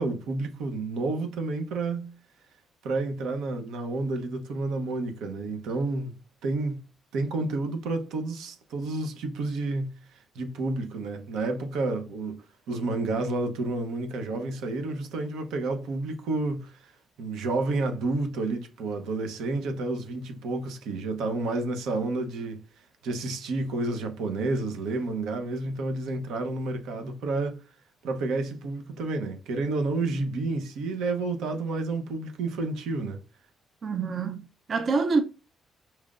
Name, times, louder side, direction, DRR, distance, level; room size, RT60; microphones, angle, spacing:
voice 1, 0.0-2.1 2.8-6.1 6.4-6.8 7.1-16.9 17.2-22.6 23.0-27.6 28.0-33.2, right 3 dB, 90° right, 0.8 m, -30 dB
voice 2, 33.8-35.2, right 4 dB, 50° right, 0.5 m, -26 dB
4.3 x 3.2 x 2.4 m
cardioid pair, 90°, 0 cm